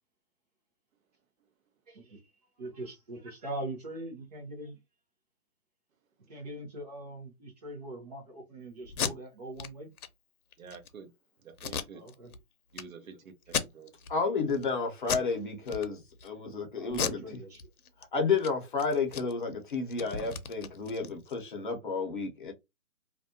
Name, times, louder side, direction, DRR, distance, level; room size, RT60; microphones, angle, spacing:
voice 1, 1.9-2.2 2.6-4.8 6.3-9.9 11.9-12.3 16.8-17.6, right 1 dB, 30° right, 0.8 m, -41 dB
Packing tape duct tape, 8.8-9.1 9.6-9.7 10.0-10.1 10.5-10.9 11.6-12.4 12.7-12.8 13.4-14.1 14.5-14.7 15.0-15.3 15.6-16.3 16.9-18.0 18.3-18.5 18.8-21.4, left 7 dB, 80° left, 0.7 m, -35 dB
voice 2, 10.6-11.1 11.4-12.0 12.7-13.9, right 5 dB, 65° right, 0.8 m, -48 dB
voice 3, 14.1-17.4 18.0-22.5, left 4 dB, 35° left, 0.7 m, -31 dB
2.5 x 2.2 x 2.6 m
hypercardioid pair, 160°, 44 cm